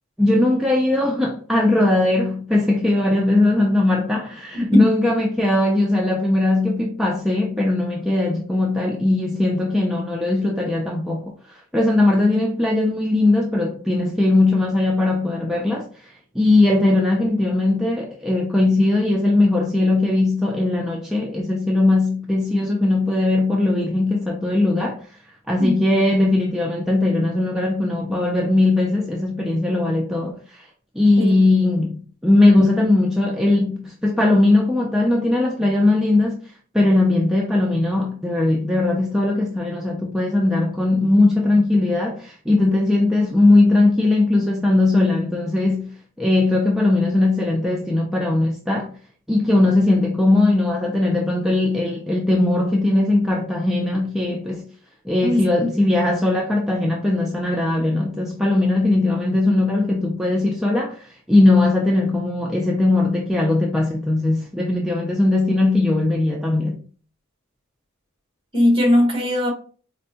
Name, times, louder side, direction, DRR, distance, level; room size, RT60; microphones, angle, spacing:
voice 1, 0.2-25.1 25.5-30.7 31.0-45.9 46.2-48.9 49.3-54.7 55.1-66.8, left 2 dB, ahead, 0.3 m, -19 dB
voice 2, 4.5-4.9 25.6-25.7 31.2-31.4 55.2-55.7 68.5-69.5, left 1 dB, 25° right, 1.1 m, -19 dB
4.3 x 2.1 x 2.7 m
head